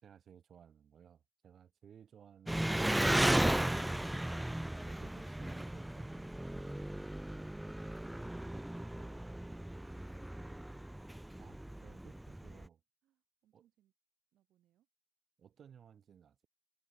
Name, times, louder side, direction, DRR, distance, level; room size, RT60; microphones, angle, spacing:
voice 1, 0.0-3.0 4.8-6.6 11.4-12.8 13.5-13.7 15.4-16.5, right 8 dB, 55° right, 6.1 m, -59 dB
Engine, 2.5-12.7, right 1 dB, 5° right, 0.5 m, -35 dB
voice 2, 13.0-13.9 14.3-14.9, right 13 dB, 80° right, 4.4 m, -75 dB
cardioid pair, 90°, 0 cm